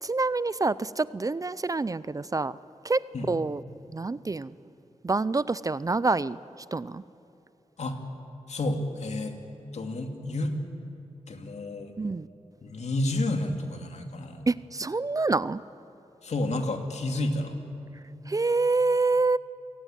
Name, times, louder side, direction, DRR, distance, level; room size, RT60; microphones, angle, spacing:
voice 1, 0.0-2.6 2.8-3.6 3.9-4.5 5.0-6.4 6.7-7.0 12.0-12.3 14.5-15.6 18.3-19.4, right 3 dB, 30° right, 18 dB, 0.5 m, -27 dB
voice 2, 8.5-9.4 9.7-10.5 11.3-11.9 12.6-14.5 16.2-17.5, left 2 dB, 65° left, 5 dB, 2.6 m, -30 dB
28.0 x 17.5 x 9.2 m, 2.9 s
cardioid pair, 70°, 12 cm